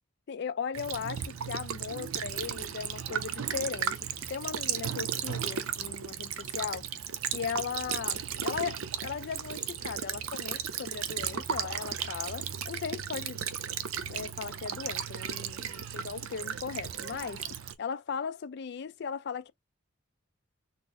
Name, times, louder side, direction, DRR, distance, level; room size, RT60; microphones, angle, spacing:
voice 1, 0.3-6.9 7.3-13.4 14.1-19.5, left 6 dB, 55° left, 0.4 m, -37 dB
Child speech kid speaking / Bird vocalization bird call bird song / Stream, 0.7-17.7, right 8 dB, 85° right, 0.5 m, -35 dB
4.1 x 2.0 x 3.5 m
head